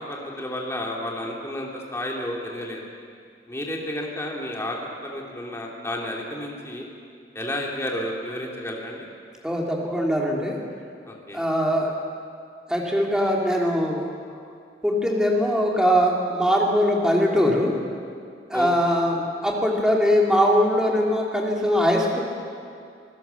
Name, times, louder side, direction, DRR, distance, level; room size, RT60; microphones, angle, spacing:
voice 1, 0.1-2.8 3.5-6.9 7.3-9.1 11.1-11.4 18.5-18.7, left 1 dB, 15° left, -1 dB, 2.6 m, -31 dB
voice 2, 9.4-10.5 11.3-11.9 12.7-14.0 14.8-17.7 18.5-22.2, equal, 5° right, -2 dB, 2.9 m, -21 dB
26.5 x 16.0 x 7.0 m, 2.3 s
head